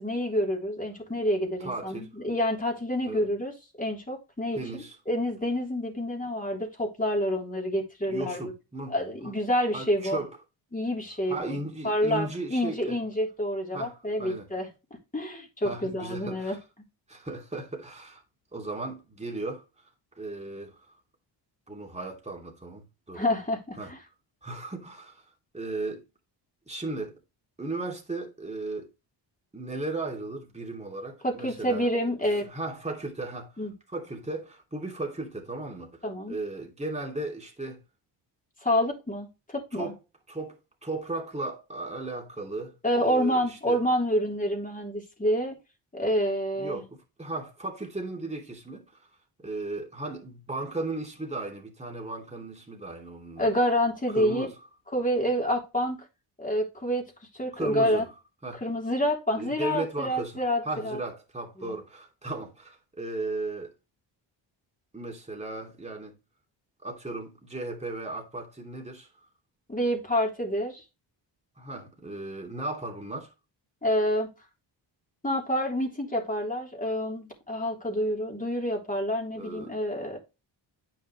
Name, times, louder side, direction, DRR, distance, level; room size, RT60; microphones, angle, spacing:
voice 1, 0.0-3.5 3.8-8.4 8.9-10.2 10.7-11.6 11.8-14.7 15.1-16.6 23.1-24.0 31.2-32.5 33.6-33.7 36.0-36.4 38.6-39.9 42.8-45.6 45.9-46.8 53.4-54.5 54.9-56.0 56.4-57.1 57.3-58.1 58.6-61.0 61.6-61.8 69.7-70.8 73.8-74.3 75.2-80.2, equal, 15° left, 3.4 m, -28 dB
voice 2, 1.6-2.1 3.1-3.3 4.5-5.0 8.1-8.9 9.2-9.3 9.7-10.3 11.3-13.0 13.7-14.5 15.6-16.6 17.1-18.2 18.5-19.6 20.2-20.9 21.7-23.2 23.8-23.9 24.4-25.2 25.5-26.1 26.7-27.1 27.6-28.9 29.5-31.9 32.5-33.6 33.9-37.8 39.7-40.0 40.3-40.5 40.8-43.8 46.6-49.0 49.4-53.5 54.1-54.5 57.5-58.1 58.4-58.6 59.4-63.7 64.9-66.2 66.8-69.1 71.6-73.3 79.3-79.7, right 2 dB, 15° right, 2.7 m, -36 dB
9.2 x 6.0 x 3.2 m
cardioid pair, 100°, 46 cm